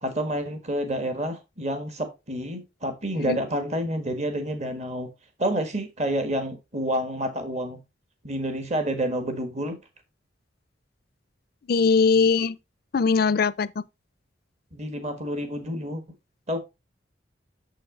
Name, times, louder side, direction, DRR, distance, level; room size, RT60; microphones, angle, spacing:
voice 1, 0.0-5.1 5.4-7.8 8.2-9.8 14.7-16.0 16.5-16.6, right 1 dB, 35° right, 1.4 m, -29 dB
voice 2, 11.7-12.6 12.9-13.7, left 5 dB, 55° left, 0.4 m, -20 dB
7.1 x 6.2 x 3.7 m
head